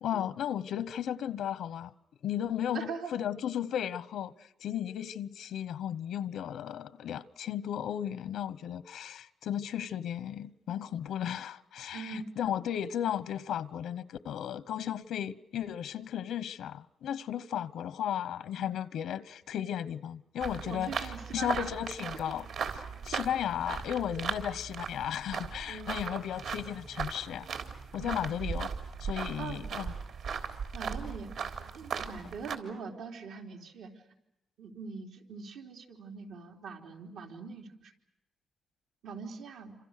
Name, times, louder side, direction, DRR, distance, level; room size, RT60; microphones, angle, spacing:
voice 1, 0.0-1.9 2.2-4.3 4.6-22.5 22.7-27.5 27.9-28.7 29.0-29.9, left 10 dB, 90° left, 0.9 m, -35 dB
voice 2, 2.7-3.1 11.9-12.3 18.6-18.7 20.7-21.7 23.1-23.2 23.7-23.8 25.7-25.9 28.0-28.4 29.4-29.6 30.7-31.3 31.6-33.9 34.6-37.9 39.0-39.8, right 5 dB, 90° right, 3.7 m, -42 dB
sound 1, 20.4-32.6, right 6 dB, 75° right, 3.5 m, -38 dB
28.5 x 26.5 x 6.6 m
cardioid pair, 145°, 0 cm